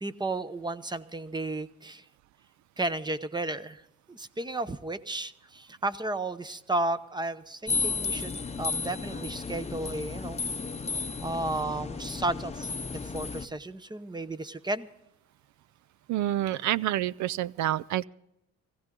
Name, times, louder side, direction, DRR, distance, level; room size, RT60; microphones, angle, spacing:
voice 1, 0.0-2.0 2.8-3.8 4.1-10.4 11.2-14.9, right 2 dB, 15° right, 13 dB, 0.8 m, -33 dB
sound 1, 7.7-13.5, left 4 dB, 20° left, 0.8 m, -33 dB
voice 2, 16.1-18.0, right 13 dB, 70° right, 22 dB, 0.5 m, -28 dB
18.0 x 15.5 x 3.8 m, 0.84 s
cardioid pair, 90°, 30 cm